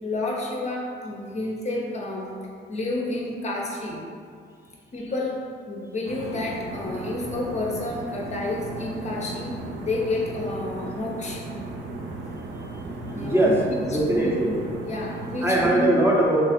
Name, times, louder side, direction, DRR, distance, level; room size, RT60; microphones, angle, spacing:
voice 1, 0.0-2.4 2.7-4.1 4.9-11.4 13.1-13.6 13.9-14.3 14.9-15.9, left 2 dB, 35° left, -2 dB, 0.6 m, -30 dB
sound 1, 6.1-15.8, right 2 dB, 65° right, 0.5 m, -36 dB
voice 2, 13.1-14.6 15.4-16.4, right 1 dB, 10° right, -4 dB, 0.6 m, -21 dB
3.0 x 2.4 x 4.2 m, 2.2 s
cardioid pair, 90°, 20 cm